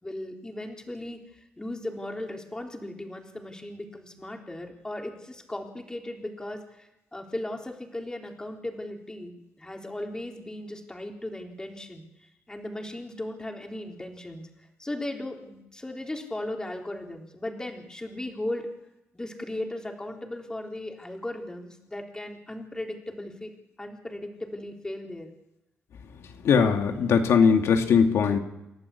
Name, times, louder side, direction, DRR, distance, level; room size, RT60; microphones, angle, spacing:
voice 1, 0.0-18.7 19.1-23.5 23.8-25.3, left 1 dB, 15° left, 2 dB, 3.7 m, -37 dB
voice 2, 26.4-28.4, left 6 dB, 80° left, 5 dB, 2.2 m, -20 dB
29.5 x 12.0 x 8.4 m, 0.93 s
cardioid pair, 80°, 5 cm